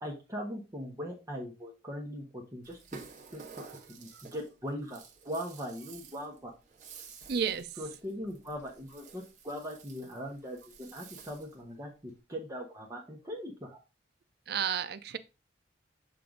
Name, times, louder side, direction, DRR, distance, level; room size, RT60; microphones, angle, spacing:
voice 1, 0.0-3.0 3.3-6.5 7.8-13.8, equal, 15° right, 0.9 m, -40 dB
Rattle (instrument), 2.6-11.6, right 5 dB, 40° right, 1.1 m, -52 dB
voice 2, 7.3-7.8 14.5-15.2, right 7 dB, 55° right, 0.5 m, -32 dB
7.5 x 2.6 x 4.9 m
head